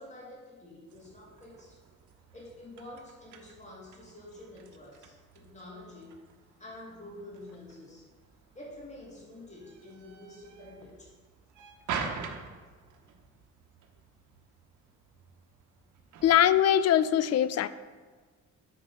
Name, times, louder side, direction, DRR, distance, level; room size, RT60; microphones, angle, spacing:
voice 1, 0.0-1.8 2.3-6.2 6.6-8.1 8.5-11.1 11.7-11.8, left 1 dB, 25° left, -3 dB, 2.6 m, -48 dB
sound 1, 0.9-16.8, right 5 dB, 75° right, 1.0 m, -45 dB
voice 2, 16.2-17.7, left 10 dB, 60° left, 15 dB, 0.4 m, -22 dB
8.7 x 4.4 x 5.6 m, 1.5 s
cardioid pair, 90°, 30 cm